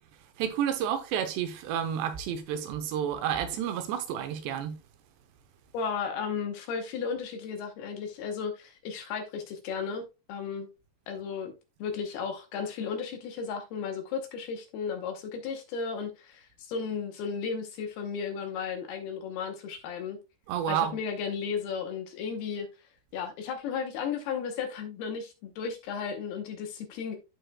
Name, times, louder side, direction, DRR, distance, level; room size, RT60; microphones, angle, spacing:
voice 1, 0.4-4.8 20.5-20.9, right 9 dB, 80° right, 2.9 m, -30 dB
voice 2, 5.7-10.7 11.1-11.5 11.8-20.2 20.7-22.7 23.1-27.2, left 6 dB, 70° left, 2.6 m, -34 dB
14.0 x 4.9 x 2.2 m
omnidirectional pair, 5.2 m